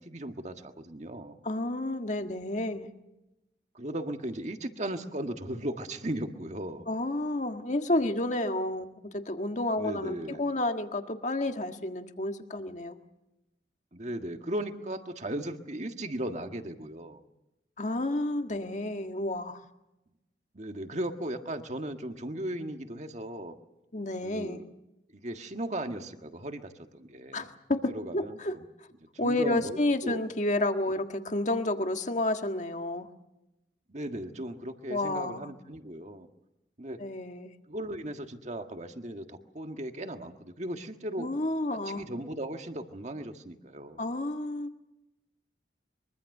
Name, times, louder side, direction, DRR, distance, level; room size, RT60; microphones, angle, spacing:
voice 1, 0.0-1.4 3.7-6.9 9.8-10.4 13.9-17.2 20.5-23.6 24.2-24.7 25.1-27.5 27.8-28.7 29.2-29.8 30.0-30.3 30.9-31.0 33.9-36.3 36.8-37.0 37.7-41.3 41.7-44.0, right 1 dB, 40° right, 6 dB, 1.7 m, -37 dB
voice 2, 1.4-2.9 6.9-13.0 17.8-19.6 23.9-24.6 27.3-28.5 29.2-33.1 34.9-35.5 37.0-37.5 41.2-42.0 44.0-44.8, left 1 dB, 45° left, 6 dB, 1.6 m, -30 dB
23.5 x 23.5 x 6.7 m, 0.93 s
head